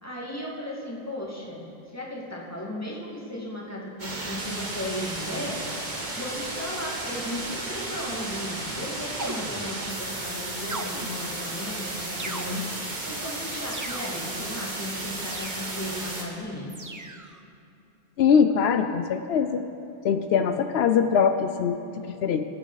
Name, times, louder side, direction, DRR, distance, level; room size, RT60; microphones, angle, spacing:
voice 1, 0.0-5.6 6.2-12.6 13.0-16.7, left 1 dB, 15° left, -5 dB, 2.2 m, -35 dB
sound 1, 4.0-16.2, right 2 dB, 45° right, 1.6 m, -34 dB
sound 2, 9.2-10.0 10.7-11.5 12.2-13.0 13.7-14.4 15.2-15.9 16.7-17.4, right 2 dB, 20° right, 0.6 m, -38 dB
voice 2, 18.2-19.7 20.0-22.4, left 7 dB, 85° left, 8 dB, 0.9 m, -22 dB
21.5 x 8.3 x 4.0 m, 2.7 s
omnidirectional pair, 1.0 m